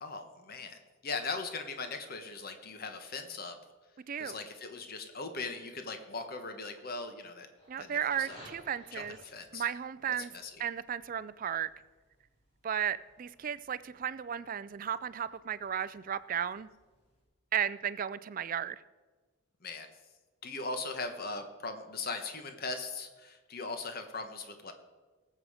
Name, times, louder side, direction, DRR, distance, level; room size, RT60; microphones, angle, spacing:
voice 1, 0.0-3.6 4.2-7.5 7.8-8.4 8.9-9.7 10.3-10.6 19.6-19.9 20.4-24.7, left 3 dB, 45° left, 7 dB, 1.2 m, -39 dB
voice 2, 4.1-4.4 7.7-9.2 9.5-10.3 10.6-11.7 12.6-16.7 17.5-18.8, right 9 dB, 40° right, 16 dB, 0.4 m, -34 dB
sound 1, 7.6-17.2, equal, 30° left, 4.3 m, -60 dB
18.5 x 7.7 x 5.0 m, 1.3 s
head